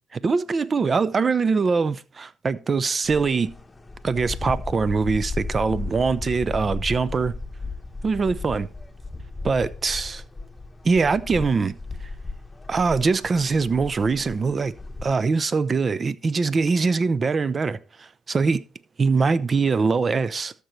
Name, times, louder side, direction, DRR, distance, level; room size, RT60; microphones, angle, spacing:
voice 1, 0.1-3.6 4.0-7.3 8.0-8.7 9.4-10.2 10.8-11.8 12.7-14.7 15.0-18.6 19.0-20.5, right 4 dB, 35° right, 0.6 m, -23 dB
sound 1, 3.0-15.1, left 3 dB, 20° left, 1.0 m, -35 dB
13.0 x 6.9 x 3.2 m
cardioid pair, 90°, 0 cm